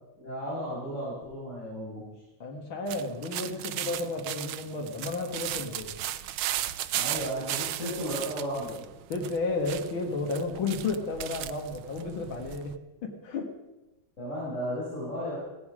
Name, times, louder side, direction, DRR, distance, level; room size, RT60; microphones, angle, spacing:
voice 1, 0.2-2.0 6.9-8.8 14.2-15.4, equal, 35° left, -8 dB, 5.6 m, -34 dB
voice 2, 2.4-6.0 9.1-12.8 13.0-13.5, left 3 dB, 90° left, 1 dB, 2.5 m, -32 dB
sound 1, 2.9-12.8, right 12 dB, 90° right, 1.5 m, -36 dB
17.0 x 14.5 x 5.0 m, 1.0 s
omnidirectional pair, 2.1 m